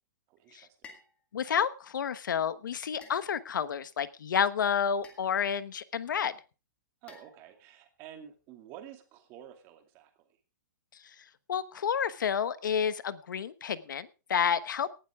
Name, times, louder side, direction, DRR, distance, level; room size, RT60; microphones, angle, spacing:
voice 1, 0.3-0.9 7.0-10.4, right 10 dB, 25° right, 5 dB, 2.4 m, -50 dB
sound 1, 0.8-1.2 3.0-3.7 5.0-5.5 7.1-7.8, left 5 dB, 10° left, 1.8 m, -54 dB
voice 2, 1.3-6.3 11.0-11.1 11.5-14.9, left 7 dB, 80° left, 15 dB, 1.2 m, -30 dB
18.5 x 11.5 x 3.6 m, 0.32 s
hypercardioid pair, 175°, 10 cm